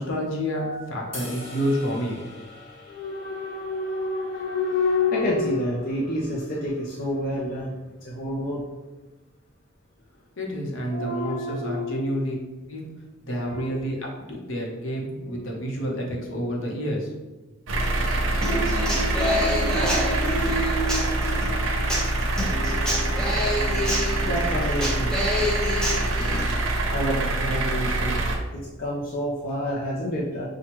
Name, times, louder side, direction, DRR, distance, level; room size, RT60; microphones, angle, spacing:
voice 1, 0.0-2.2 10.4-12.4 12.7-12.9 13.2-17.1, equal, 70° left, -1 dB, 0.9 m, -29 dB
voice 2, 0.5-1.6 2.5-7.8 8.0-8.6 10.9-12.2 13.3-13.7 24.1-25.1 26.9-30.5, left 1 dB, 45° left, -5 dB, 0.6 m, -28 dB
sound 1, 1.1-7.4, left 2 dB, 30° left, 1.4 m, -45 dB
sound 2, 17.7-28.4, right 2 dB, 70° right, 0.6 m, -25 dB
Human voice / Acoustic guitar, 18.4-26.4, equal, 5° left, 0.8 m, -27 dB
5.9 x 2.3 x 3.0 m, 1.1 s
head